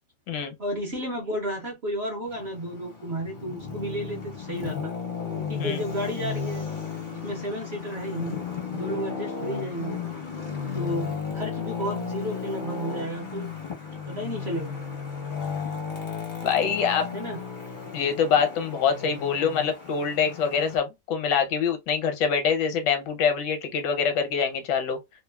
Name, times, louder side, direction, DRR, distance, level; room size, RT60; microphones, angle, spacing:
voice 1, 0.6-4.9 5.4-6.8 7.1-8.4 8.7-10.0 10.7-13.5 14.1-14.8 17.1-17.4, right 1 dB, 55° right, 0.8 m, -32 dB
Traffic noise roadway noise, 2.3-20.8, left 6 dB, 50° left, 0.5 m, -34 dB
voice 2, 16.4-17.1 17.9-25.0, left 6 dB, 85° left, 1.4 m, -25 dB
3.0 x 2.3 x 2.2 m
omnidirectional pair, 1.8 m